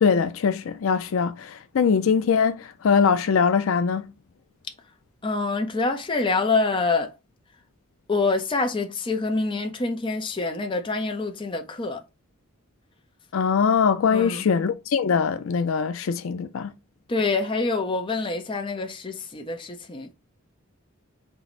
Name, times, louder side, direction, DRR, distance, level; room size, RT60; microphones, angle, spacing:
voice 1, 0.0-4.1 13.3-16.7, left 6 dB, 70° left, 0.4 m, -22 dB
voice 2, 5.2-7.1 8.1-12.0 14.1-14.5 17.1-20.1, left 3 dB, 25° left, 0.6 m, -26 dB
4.5 x 2.0 x 3.9 m
head